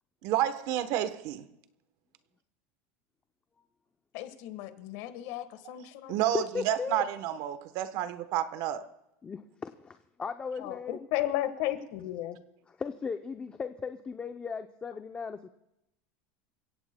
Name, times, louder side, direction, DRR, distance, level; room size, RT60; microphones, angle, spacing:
voice 1, 0.2-1.5 5.6-5.7 6.1-8.9, right 12 dB, 55° right, 1.0 m, -30 dB
voice 2, 4.1-6.1 10.6-12.4, left 13 dB, 60° left, 1.4 m, -34 dB
voice 3, 6.3-7.0 9.2-11.0 12.7-15.5, left 5 dB, 15° left, 0.5 m, -36 dB
29.0 x 16.5 x 2.2 m
supercardioid pair, 155°, 7 cm